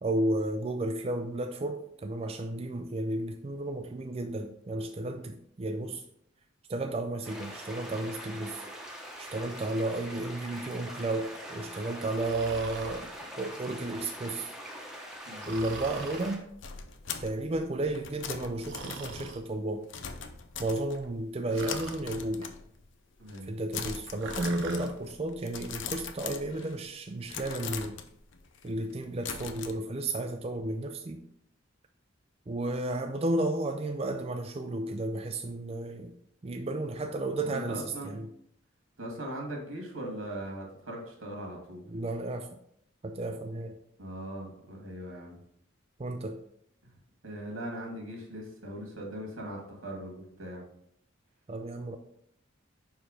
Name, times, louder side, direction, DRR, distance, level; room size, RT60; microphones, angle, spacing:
voice 1, 0.0-6.0 6.7-8.6 9.2-13.1 13.4-14.5 15.5-16.4 17.2-19.8 20.6-22.5 23.4-28.0 28.6-31.2 32.5-36.1 36.4-38.3 41.9-42.5 43.0-43.8 46.0-46.4 51.5-52.0, right 2 dB, 30° right, 5 dB, 0.4 m, -33 dB
sound 1, 7.2-16.4, equal, 5° right, 0.9 m, -43 dB
Breathing, 12.1-13.1 15.4-16.4 18.7-19.4 21.5-22.0 24.2-24.9, right 4 dB, 65° right, 0.9 m, -42 dB
sound 2, 16.1-21.2 21.6-22.9 23.2-23.5 23.7-26.9 27.3-29.7, left 6 dB, 65° left, 0.6 m, -41 dB
voice 2, 23.2-23.5 37.5-38.2 39.0-41.9 44.0-45.4 47.2-50.6, right 1 dB, 85° right, 0 dB, 2.1 m, -40 dB
5.7 x 4.7 x 5.1 m, 0.71 s
head